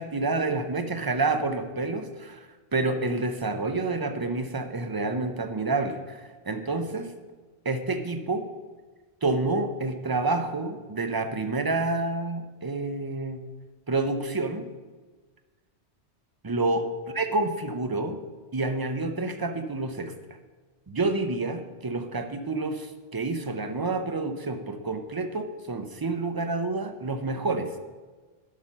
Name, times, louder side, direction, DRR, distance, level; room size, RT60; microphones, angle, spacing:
voice 1, 0.0-7.1 7.6-8.5 9.2-13.4 13.9-14.7 16.4-16.9 17.1-18.2 18.5-20.1 20.9-27.7, right 3 dB, 25° right, 8 dB, 0.5 m, -28 dB
11.0 x 5.8 x 5.4 m, 1.4 s
omnidirectional pair, 1.1 m